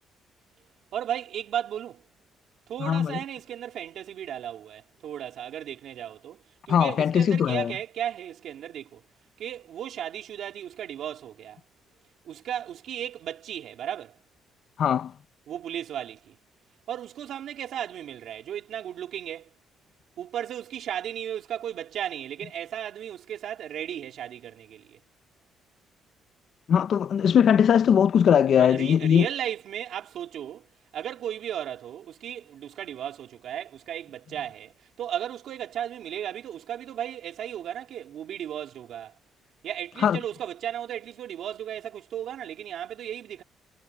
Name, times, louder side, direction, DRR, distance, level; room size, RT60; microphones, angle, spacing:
voice 1, 0.9-2.0 2.7-9.0 9.4-11.6 12.2-14.2 15.5-16.4 16.9-19.5 20.2-25.0 28.6-39.1 39.6-43.4, right 10 dB, 60° right, 3.7 m, -35 dB
voice 2, 2.8-3.2 6.7-7.7 14.8-15.1 26.7-29.3 40.0-40.2, left 8 dB, 50° left, 0.8 m, -20 dB
cardioid pair, 160°, 0 cm